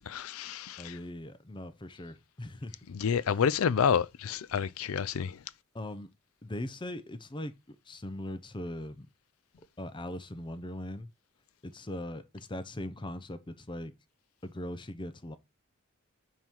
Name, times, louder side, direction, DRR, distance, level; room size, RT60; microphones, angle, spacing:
voice 1, 0.1-0.9 2.9-5.4, left 7 dB, 85° left, 0.4 m, -29 dB
voice 2, 0.8-2.7 5.7-6.1 6.4-9.1 9.8-11.1 11.6-13.9 14.4-15.4, left 1 dB, 25° left, 0.6 m, -40 dB
5.6 x 4.6 x 4.4 m
head